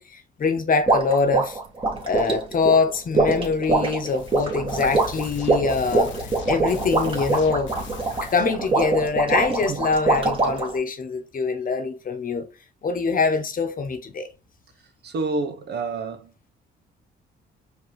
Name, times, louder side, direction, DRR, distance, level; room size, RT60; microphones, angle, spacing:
voice 1, 0.0-1.6 2.0-7.7 8.2-12.4 12.8-14.3, left 4 dB, 45° left, 1.0 m, -24 dB
sound 1, 0.9-10.8, right 3 dB, 25° right, 1.5 m, -23 dB
sound 2, 4.0-8.8, left 6 dB, 70° left, 0.8 m, -38 dB
voice 2, 15.0-16.3, right 3 dB, 60° right, 0.9 m, -28 dB
5.1 x 2.9 x 3.1 m
cardioid pair, 90°, 20 cm